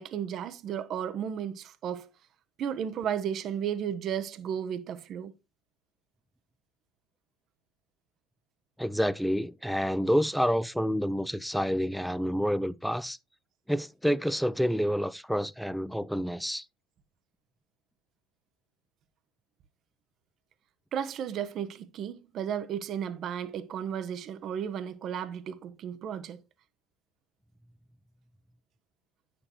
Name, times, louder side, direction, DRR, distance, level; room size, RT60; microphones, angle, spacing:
voice 1, 0.0-2.1 2.6-5.3 20.9-26.4, right 8 dB, 50° right, 0.7 m, -34 dB
voice 2, 8.8-13.2 13.7-16.6, equal, ahead, 0.5 m, -28 dB
9.7 x 6.8 x 2.9 m
hypercardioid pair, 70°, 0 cm